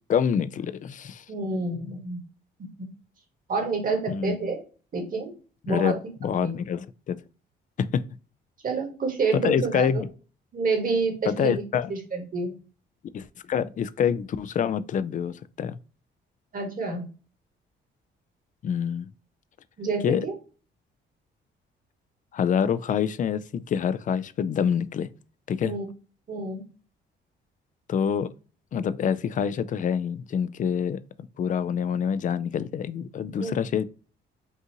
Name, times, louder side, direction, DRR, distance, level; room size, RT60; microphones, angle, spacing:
voice 1, 0.1-1.2 4.1-4.6 5.7-5.9 6.2-7.2 7.8-8.0 9.3-10.1 11.3-11.9 13.1-15.8 18.6-19.1 20.0-20.3 22.3-25.1 25.5-25.7 27.9-28.3 28.7-31.0 31.4-33.8, left 7 dB, 40° left, 0.4 m, -26 dB
voice 2, 1.3-2.2 3.5-4.6 4.9-5.3 5.6-6.0 6.4-6.5 8.6-10.0 10.5-11.6 11.9-12.5 16.5-17.1 19.8-20.3 25.6-25.9 26.3-26.6 33.4-33.5, right 4 dB, 45° right, 1.6 m, -28 dB
5.4 x 2.5 x 2.9 m
cardioid pair, 90°, 20 cm